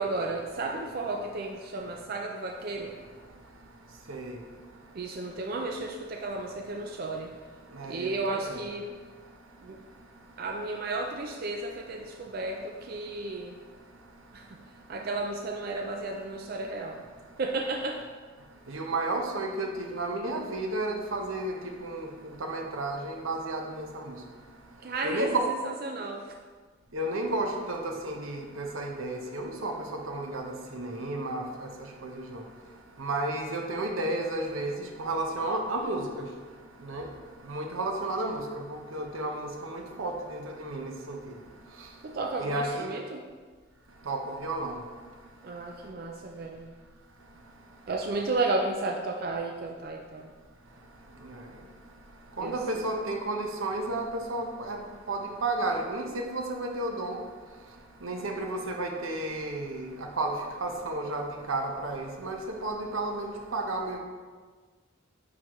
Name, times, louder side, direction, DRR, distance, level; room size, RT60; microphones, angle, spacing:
voice 1, 0.0-3.0 4.9-7.3 7.8-8.9 9.6-9.8 10.4-13.5 14.3-14.5 14.9-17.0 17.4-18.0 24.8-26.3 42.0-43.2 45.4-46.7 47.9-50.3 52.4-52.8, right 2 dB, 50° right, 2 dB, 0.4 m, -33 dB
voice 2, 7.7-8.6 18.7-21.5 21.8-22.1 22.4-24.2 25.0-25.5 26.9-29.7 30.1-31.4 32.0-32.4 33.0-34.7 35.0-36.2 36.8-37.1 37.5-38.4 38.7-41.2 42.4-42.9 44.1-44.8 51.3-51.4 52.4-54.8 55.1-57.2 58.0-59.9 60.2-60.3 60.6-64.0, right 2 dB, 90° right, 3 dB, 0.8 m, -32 dB
9.5 x 3.9 x 3.1 m, 1.5 s
head